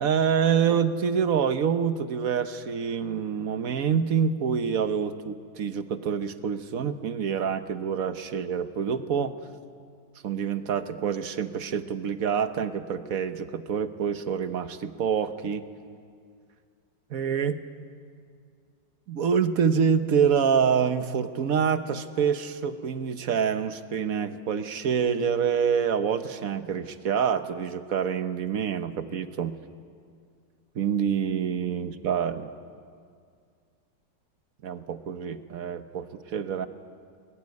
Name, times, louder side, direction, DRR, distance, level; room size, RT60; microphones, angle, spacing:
voice 1, 0.0-9.3 10.2-15.6 17.1-17.6 19.1-29.6 30.7-32.5 34.6-36.7, right 7 dB, 55° right, 10 dB, 1.3 m, -26 dB
21.0 x 21.0 x 9.5 m, 2.2 s
omnidirectional pair, 2.0 m